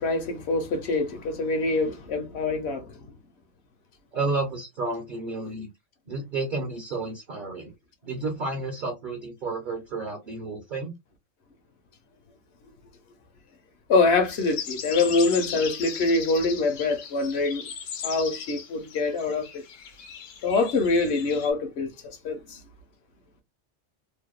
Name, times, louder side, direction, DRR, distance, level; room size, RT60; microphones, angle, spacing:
voice 1, 0.0-3.1 13.9-17.7 18.0-19.6 20.4-22.6, left 3 dB, 65° left, 1.0 m, -25 dB
voice 2, 4.1-5.7 6.1-7.7 8.0-11.0, right 3 dB, 50° right, 0.7 m, -31 dB
sound 1, 14.3-21.5, left 7 dB, 90° left, 1.0 m, -38 dB
2.7 x 2.2 x 2.2 m
omnidirectional pair, 1.3 m